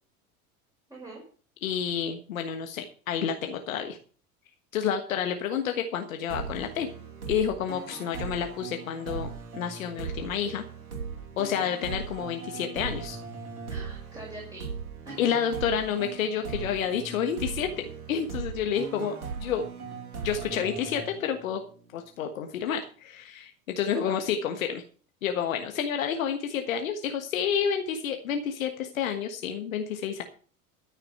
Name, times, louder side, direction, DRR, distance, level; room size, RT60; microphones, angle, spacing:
voice 1, 1.6-4.0 4.7-6.9 7.3-10.6 11.4-13.2 15.2-19.6 20.2-21.6 21.9-24.8 25.2-30.2, left 8 dB, 70° left, 6 dB, 1.4 m, -29 dB
sound 1, 6.3-21.7, right 5 dB, 80° right, 2.8 m, -39 dB
voice 2, 13.7-14.7 15.1-15.3 23.9-24.2, right 1 dB, 10° right, -3 dB, 5.4 m, -43 dB
13.0 x 6.5 x 7.0 m, 0.41 s
figure-of-eight pair, 75°, 43 cm